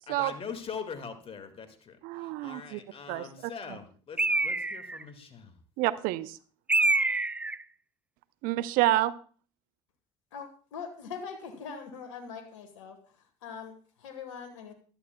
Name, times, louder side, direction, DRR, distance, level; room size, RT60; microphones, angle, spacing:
voice 1, 0.1-5.6, left 6 dB, 35° left, 8 dB, 2.0 m, -42 dB
voice 2, 2.0-2.8 3.1-3.3 5.8-6.4 8.4-9.1, right 16 dB, 65° right, 15 dB, 0.6 m, -28 dB
Bird, 4.2-5.0 6.7-7.6, right 2 dB, 10° right, 0.4 m, -26 dB
voice 3, 10.3-14.7, left 6 dB, 80° left, 7 dB, 1.5 m, -42 dB
15.0 x 11.5 x 2.3 m, 0.41 s
hypercardioid pair, 65°, 16 cm